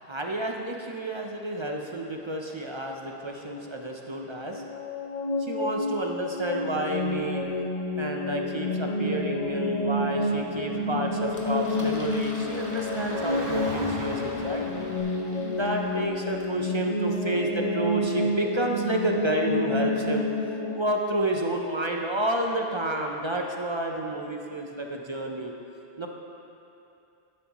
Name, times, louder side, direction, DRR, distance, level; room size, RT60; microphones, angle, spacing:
voice 1, 0.1-4.9 5.4-7.5 8.0-14.7 15.5-20.3 20.7-25.5 26.0-26.1, right 1 dB, 35° right, 1 dB, 0.6 m, -30 dB
sound 1, 4.5-20.8, left 2 dB, 40° left, 0.7 m, -29 dB
Car / Traffic noise roadway noise, 9.9-15.0, right 1 dB, 65° right, 1.5 m, -40 dB
Engine, 11.3-16.6, left 1 dB, 20° left, 0.9 m, -47 dB
11.0 x 11.0 x 3.0 m, 2.8 s
omnidirectional pair, 1.0 m